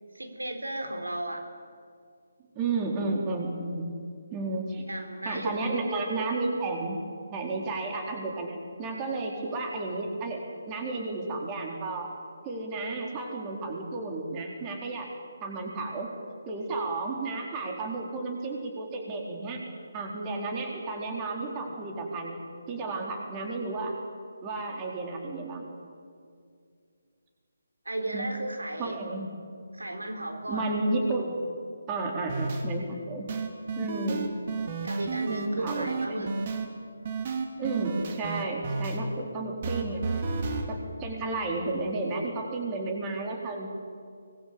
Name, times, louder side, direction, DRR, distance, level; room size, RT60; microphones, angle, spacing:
voice 1, 0.1-1.5 4.9-5.7 27.9-29.0 29.7-30.7 34.8-36.4, right 1 dB, 80° right, 5 dB, 3.8 m, -34 dB
voice 2, 2.5-3.9 4.3-4.9 5.2-7.0 7.3-10.4 10.7-12.1 12.4-15.1 15.4-16.1 16.5-19.6 19.9-22.4 22.7-23.9 24.4-25.7 28.1-28.3 28.8-29.3 30.5-31.3 31.9-33.3 33.8-34.3 35.3-36.2 37.6-40.1 40.7-43.7, right 3 dB, 20° right, 1 dB, 4.1 m, -32 dB
sound 1, 32.3-32.6 33.3-36.7 37.1-39.0 39.6-40.7, right 4 dB, 40° right, 3.0 m, -32 dB
25.0 x 21.0 x 8.8 m, 2.3 s
figure-of-eight pair, 150°, 0 cm